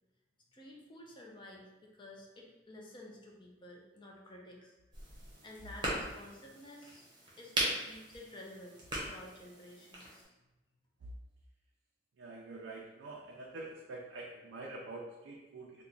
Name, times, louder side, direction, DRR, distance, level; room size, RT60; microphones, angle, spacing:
voice 1, 0.5-4.7 5.4-7.1 7.4-10.3, left 1 dB, 25° left, -1 dB, 0.5 m, -52 dB
sound 1, 4.9-10.2, right 1 dB, 25° right, 0.8 m, -39 dB
voice 2, 12.2-15.8, right 2 dB, 75° right, -2 dB, 0.4 m, -46 dB
2.9 x 2.2 x 3.8 m, 1.1 s
head